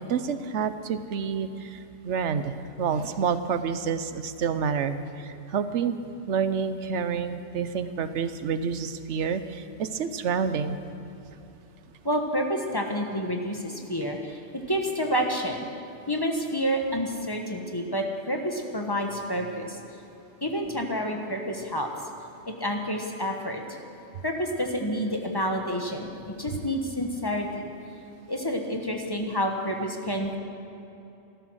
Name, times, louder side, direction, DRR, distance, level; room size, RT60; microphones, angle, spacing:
voice 1, 0.1-5.0 5.5-6.0 6.3-10.8, right 6 dB, 75° right, 11 dB, 1.1 m, -28 dB
voice 2, 12.0-14.4 14.7-15.7 16.1-19.8 20.4-21.9 22.4-23.8 24.2-27.7 28.3-30.4, equal, 20° left, 2 dB, 1.2 m, -29 dB
15.5 x 13.0 x 6.3 m, 2.9 s
omnidirectional pair, 1.2 m